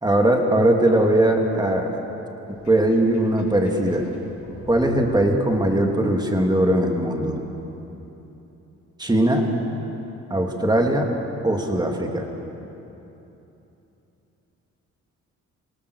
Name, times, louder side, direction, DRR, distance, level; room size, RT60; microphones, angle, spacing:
voice 1, 0.0-2.0 2.5-4.1 4.7-7.4 9.0-9.5 10.3-11.1 11.4-12.3, right 1 dB, 15° right, 2 dB, 2.8 m, -20 dB
Sink (filling or washing), 2.5-6.3, left 2 dB, 70° left, 6.7 m, -42 dB
27.0 x 18.5 x 6.6 m, 3.0 s
cardioid pair, 90°, 30 cm